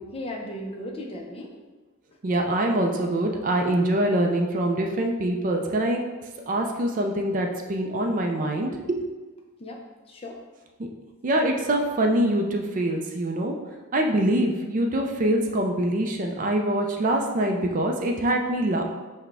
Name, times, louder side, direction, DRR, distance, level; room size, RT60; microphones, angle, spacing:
voice 1, 0.1-1.5 9.6-10.4, left 1 dB, 25° left, 1 dB, 0.5 m, -36 dB
voice 2, 2.2-6.0 6.5-9.1 10.8-10.9 11.2-13.5 13.9-18.8, right 1 dB, 40° right, 3 dB, 0.4 m, -24 dB
5.8 x 2.2 x 3.4 m, 1.2 s
head